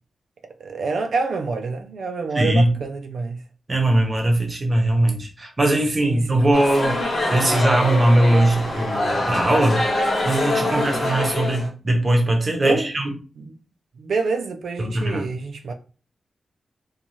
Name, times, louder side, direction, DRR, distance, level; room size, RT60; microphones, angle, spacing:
voice 1, 0.6-3.4 6.0-6.4 10.6-10.9 12.6-12.9 13.4-13.5 14.0-15.7, right 4 dB, 75° right, 0.3 m, -27 dB
voice 2, 2.3-2.7 3.7-7.0 7.3-9.9 10.2-13.1 14.8-15.3, right 1 dB, 25° right, 0.7 m, -20 dB
sound 1, 6.5-11.7, left 1 dB, 65° left, 1.1 m, -24 dB
2.6 x 2.2 x 2.9 m
wide cardioid pair, 160°, 0 cm